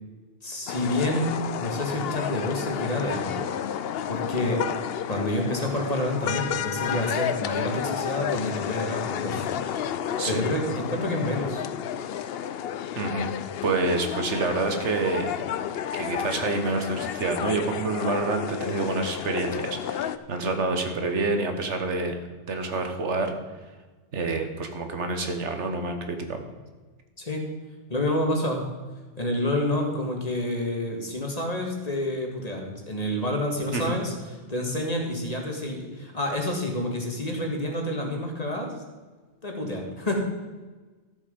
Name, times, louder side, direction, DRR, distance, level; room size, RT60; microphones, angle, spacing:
voice 1, 0.4-4.7 5.1-9.5 10.3-11.7 27.2-27.4 27.9-28.7 29.2-38.7 39.4-40.2, left 1 dB, 35° left, 1 dB, 1.8 m, -28 dB
sound 1, 0.7-20.2, left 9 dB, 65° left, 0.7 m, -31 dB
voice 2, 13.0-13.3 13.6-15.4 15.9-22.2 22.5-23.3 24.1-26.4 33.7-34.0, right 3 dB, 80° right, 6 dB, 1.5 m, -27 dB
13.0 x 7.2 x 5.2 m, 1.3 s
omnidirectional pair, 1.2 m